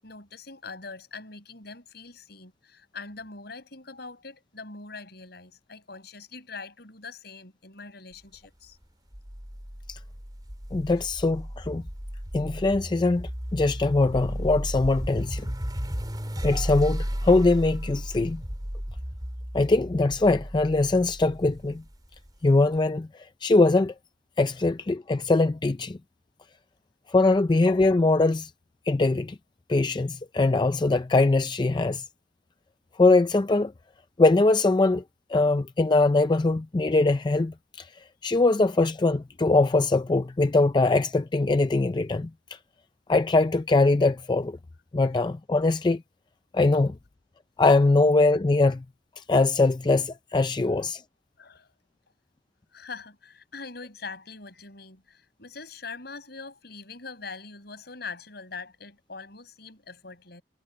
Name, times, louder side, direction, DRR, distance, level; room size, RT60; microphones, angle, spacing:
voice 1, 0.0-8.8 51.4-51.7 52.7-60.4, left 4 dB, 60° left, 7.4 m, -42 dB
sound 1, 9.1-22.3, equal, 20° right, 3.9 m, -34 dB
voice 2, 10.7-11.8 12.3-15.5 16.4-18.4 19.5-21.8 22.4-23.9 24.4-26.0 27.1-28.5 28.9-29.4 29.7-32.0 33.0-33.7 34.2-35.0 35.3-37.9 38.2-42.6 43.1-44.6 44.9-46.0 46.5-47.0 47.6-48.8 49.2-51.0, left 2 dB, 25° left, 0.4 m, -22 dB
head